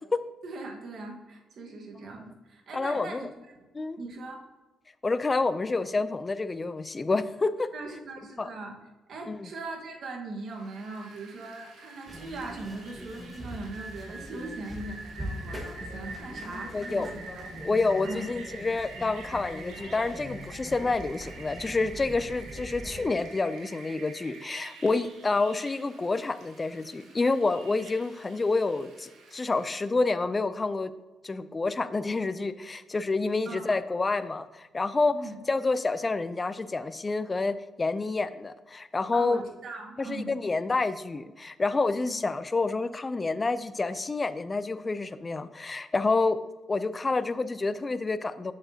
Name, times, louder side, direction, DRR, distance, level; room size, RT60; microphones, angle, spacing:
voice 1, 0.4-3.6 4.0-4.4 7.7-8.8 9.1-17.4 18.0-18.2 33.4-33.7 35.1-35.4 39.1-40.3 41.9-42.2, right 2 dB, 60° right, 1 dB, 1.4 m, -40 dB
voice 2, 2.7-3.3 3.7-4.0 5.0-7.7 8.4-8.5 9.3-9.5 16.7-17.1 17.6-30.9 31.2-35.2 35.5-39.4 40.0-46.4 46.7-48.5, left 3 dB, 25° left, 13 dB, 0.4 m, -28 dB
Rain, 10.5-29.9, right 3 dB, 85° right, 1.5 m, -47 dB
sound 1, 12.1-23.0, equal, 10° right, 1.3 m, -42 dB
7.3 x 6.9 x 2.8 m, 1.2 s
cardioid pair, 90°, 0 cm